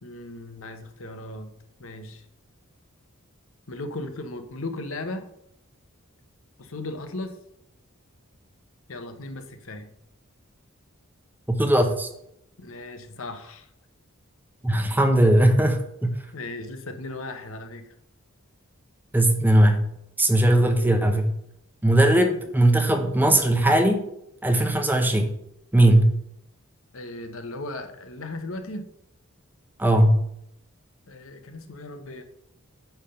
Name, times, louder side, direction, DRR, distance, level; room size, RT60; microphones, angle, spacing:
voice 1, 0.0-1.5 1.8-2.2 3.7-5.3 6.6-7.4 8.9-9.9 12.6-13.7 16.3-17.9 22.4-22.5 26.9-28.9 31.1-32.2, left 2 dB, 65° left, 7 dB, 1.0 m, -36 dB
voice 2, 11.5-12.1 14.6-16.1 19.1-19.9 20.2-21.3 21.8-24.1 24.4-25.3 25.7-26.1 29.8-30.2, right 1 dB, 10° right, 5 dB, 0.8 m, -19 dB
9.0 x 3.6 x 5.7 m, 0.77 s
head